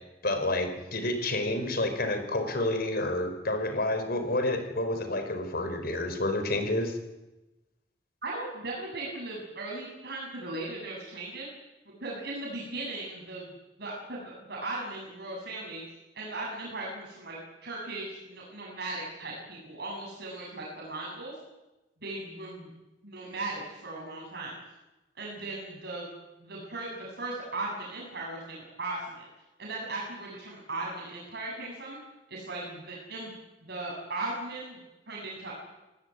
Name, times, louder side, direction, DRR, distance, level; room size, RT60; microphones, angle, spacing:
voice 1, 0.2-7.0, left 2 dB, 60° left, 8 dB, 4.8 m, -29 dB
voice 2, 8.2-11.5 11.9-13.5 13.8-15.8 16.1-17.4 17.6-21.4 22.0-22.7 23.0-24.6 25.2-26.1 26.4-29.3 29.6-32.0 32.3-33.3 33.6-34.8 35.1-35.6, right 2 dB, 65° right, -3 dB, 7.7 m, -37 dB
26.5 x 18.0 x 9.9 m, 1.0 s
head